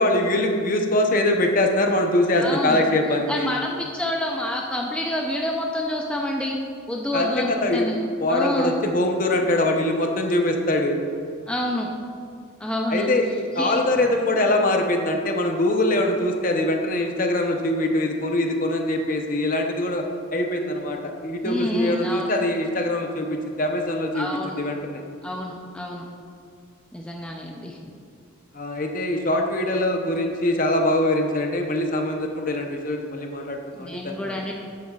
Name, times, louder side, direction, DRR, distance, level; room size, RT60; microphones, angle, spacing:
voice 1, 0.0-3.5 7.1-7.8 8.2-11.0 12.9-20.0 20.3-24.3 24.6-25.0 28.5-34.4, left 1 dB, 40° left, 3 dB, 0.7 m, -23 dB
voice 2, 2.4-2.8 3.3-6.6 6.9-8.0 8.3-8.7 11.5-11.9 12.6-13.1 13.6-13.8 21.4-22.3 24.1-24.6 25.2-26.1 26.9-27.8 33.8-34.5, left 1 dB, 5° left, -1 dB, 0.5 m, -28 dB
12.0 x 8.4 x 2.4 m, 2.3 s
head